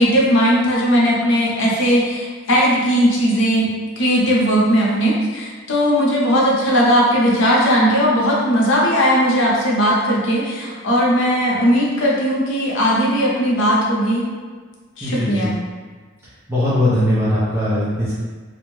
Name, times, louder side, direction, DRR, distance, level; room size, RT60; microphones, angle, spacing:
voice 1, 0.0-3.7 4.0-14.2 15.0-15.5, equal, 65° left, -5 dB, 0.7 m, -17 dB
voice 2, 15.0-15.5 16.5-18.1, left 1 dB, 15° right, -11 dB, 0.5 m, -19 dB
2.5 x 2.1 x 3.0 m, 1.5 s
head